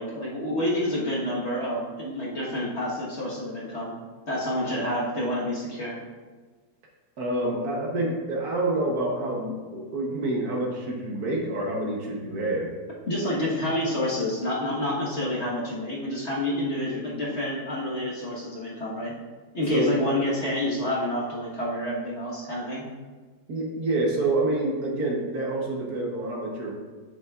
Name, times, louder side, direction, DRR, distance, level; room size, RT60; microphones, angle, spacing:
voice 1, 0.0-3.9 4.3-6.0 13.1-19.1 19.5-22.8, left 1 dB, 40° left, -6 dB, 1.5 m, -28 dB
voice 2, 7.2-12.7 19.7-20.0 23.5-26.7, right 2 dB, 60° right, -1 dB, 1.4 m, -27 dB
8.4 x 8.0 x 2.4 m, 1.4 s
omnidirectional pair, 2.0 m